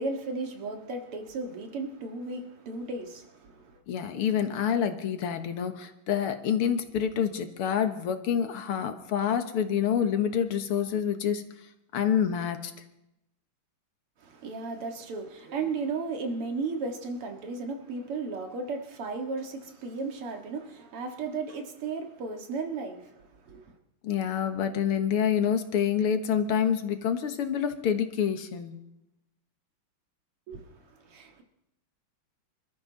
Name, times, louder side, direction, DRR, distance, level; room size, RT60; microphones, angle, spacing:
voice 1, 0.0-3.7 14.2-23.1 23.5-23.6 30.5-31.4, right 4 dB, 85° right, 2.8 m, -35 dB
voice 2, 3.9-11.4 11.9-12.7 24.0-28.8, left 8 dB, 85° left, 2.2 m, -27 dB
26.5 x 13.5 x 4.0 m
omnidirectional pair, 2.4 m